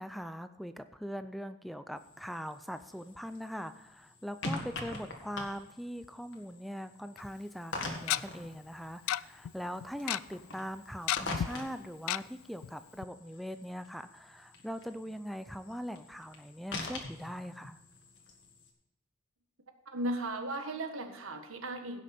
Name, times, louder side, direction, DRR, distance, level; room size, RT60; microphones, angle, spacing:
voice 1, 0.0-17.8, equal, ahead, 10 dB, 0.4 m, -41 dB
sound 1, 2.0-18.7, left 2 dB, 60° left, 1.9 m, -45 dB
Tick-tock, 7.2-7.3 8.1-8.2 9.1-9.2 9.4-9.5 9.8-10.2 11.1-11.5 12.1-12.2 12.6-12.7 13.0-13.1, left 12 dB, 90° left, 0.3 m, -30 dB
voice 2, 19.9-22.0, right 1 dB, 80° right, 6 dB, 1.5 m, -36 dB
16.5 x 6.3 x 4.3 m, 1.0 s
head